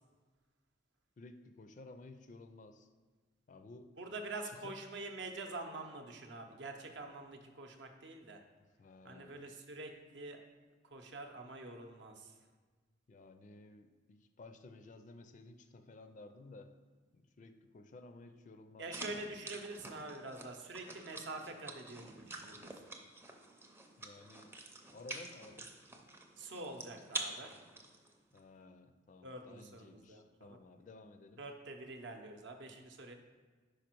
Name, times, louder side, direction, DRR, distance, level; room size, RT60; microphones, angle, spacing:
voice 1, 1.2-2.9 3.5-3.9 4.4-4.7 8.8-9.5 13.1-16.7 17.1-18.9 24.0-24.5 24.9-25.7 28.3-31.4, left 2 dB, 40° left, 8 dB, 0.4 m, -55 dB
voice 2, 4.0-8.4 9.0-10.4 10.8-12.3 18.8-22.7 26.4-27.5 29.2-30.5 31.4-33.1, right 2 dB, 65° right, 4 dB, 0.7 m, -46 dB
sound 1, 18.9-28.4, right 2 dB, 15° right, 0.5 m, -47 dB
5.1 x 4.9 x 4.5 m, 1.4 s
head